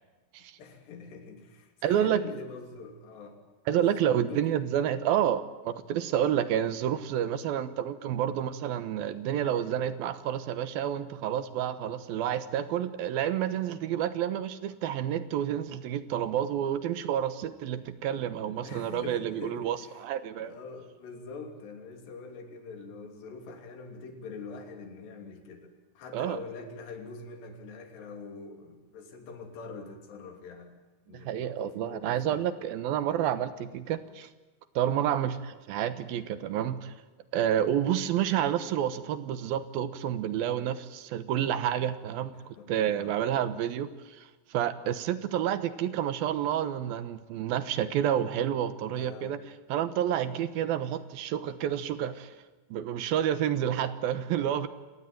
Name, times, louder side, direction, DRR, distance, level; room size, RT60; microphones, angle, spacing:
voice 1, 0.6-3.4 3.7-4.8 7.2-7.4 18.6-20.0 20.4-30.8 31.1-32.5 42.3-42.7 43.0-43.5 48.9-49.4 54.6-54.7, left 4 dB, 80° left, 5 dB, 5.1 m, -44 dB
voice 2, 1.8-2.2 3.7-20.5 26.1-26.4 31.1-34.3 34.8-36.9 37.3-49.4 49.7-52.3 52.7-54.7, right 10 dB, 70° right, 13 dB, 2.7 m, -29 dB
28.0 x 18.5 x 9.2 m, 1.2 s
omnidirectional pair, 4.8 m